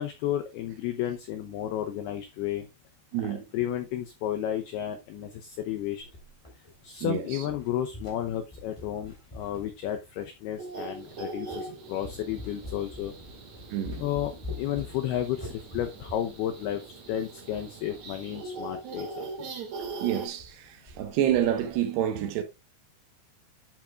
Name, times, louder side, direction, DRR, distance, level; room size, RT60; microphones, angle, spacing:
voice 1, 0.0-2.7 3.2-6.0 6.6-13.1 14.0-19.5, left 11 dB, 80° left, 2.3 m, -32 dB
voice 2, 3.1-3.4 7.0-7.2 13.7-14.0 20.0-22.4, right 11 dB, 70° right, 2.9 m, -28 dB
sound 1, 6.0-7.1 7.4-10.4 11.0-11.1 11.5-11.7 12.0-18.1 18.4-18.5 18.7-18.8 19.2-19.4 19.8-19.9 20.2-20.6 20.9-21.8, left 2 dB, 5° left, 2.8 m, -45 dB
sound 2, 10.6-20.3, right 3 dB, 50° right, 2.4 m, -41 dB
11.0 x 7.6 x 2.4 m
omnidirectional pair, 5.7 m